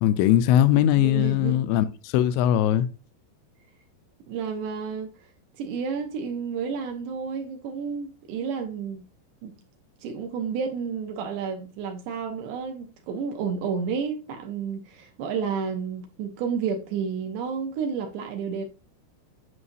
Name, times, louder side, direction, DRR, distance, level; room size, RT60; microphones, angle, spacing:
voice 1, 0.0-2.9, left 11 dB, 90° left, 2.9 m, -20 dB
voice 2, 1.0-1.6 4.3-5.1 5.6-9.0 9.4-9.6 10.0-18.7, right 6 dB, 75° right, 2.7 m, -31 dB
9.6 x 5.5 x 2.6 m
omnidirectional pair, 5.2 m